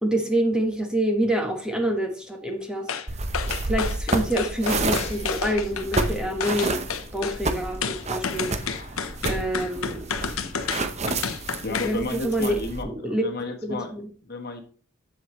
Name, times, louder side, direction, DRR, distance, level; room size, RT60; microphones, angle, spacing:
voice 1, 0.0-2.9 3.6-6.8 7.1-8.5 9.2-10.0 11.7-13.2 13.6-14.1, right 1 dB, 5° right, 3 dB, 1.2 m, -26 dB
sound 1, 2.9-3.1 3.3-6.1 6.4-7.4 7.8-12.0 12.3-12.4, left 6 dB, 85° left, 0.9 m, -30 dB
sound 2, 3.1-12.8, right 2 dB, 30° right, 0.8 m, -30 dB
sound 3, 4.9-11.9, left 2 dB, 30° left, 1.2 m, -44 dB
voice 2, 11.2-13.9 14.2-14.6, left 3 dB, 50° left, 4 dB, 1.3 m, -33 dB
8.0 x 7.8 x 3.1 m, 0.43 s
head